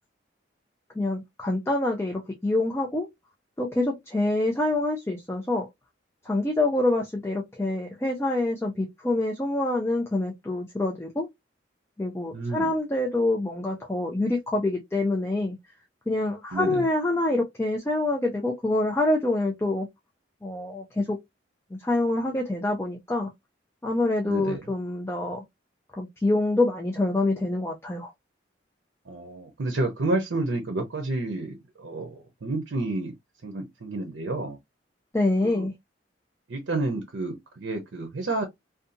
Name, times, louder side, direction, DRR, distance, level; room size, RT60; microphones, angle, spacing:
voice 1, 1.0-3.1 3.6-5.7 6.3-11.3 12.0-15.6 16.1-19.9 20.4-21.2 21.7-23.3 23.8-25.4 26.0-28.1 35.1-35.7, left 2 dB, 15° left, 0.4 m, -26 dB
voice 2, 12.3-12.7 16.5-16.9 24.2-24.7 29.1-33.1 33.4-34.6 35.4-35.7 36.5-38.4, right 2 dB, 80° right, 0.6 m, -30 dB
2.7 x 2.3 x 2.5 m
head